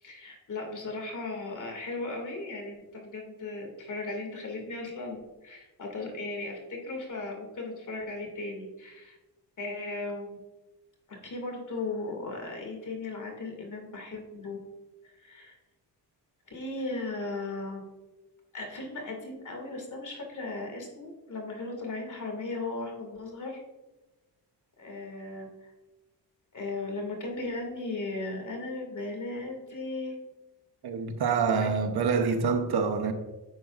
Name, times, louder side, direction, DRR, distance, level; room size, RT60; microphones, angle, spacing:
voice 1, 0.0-9.2 9.6-10.4 11.1-14.6 15.1-15.6 16.5-17.8 18.5-23.6 24.8-25.7 26.5-30.1 31.6-31.7, left 2 dB, 45° left, 2.4 m, -37 dB
voice 2, 30.8-33.1, right 5 dB, 60° right, 1.0 m, -26 dB
11.0 x 7.2 x 2.5 m
cardioid pair, 105°, 43 cm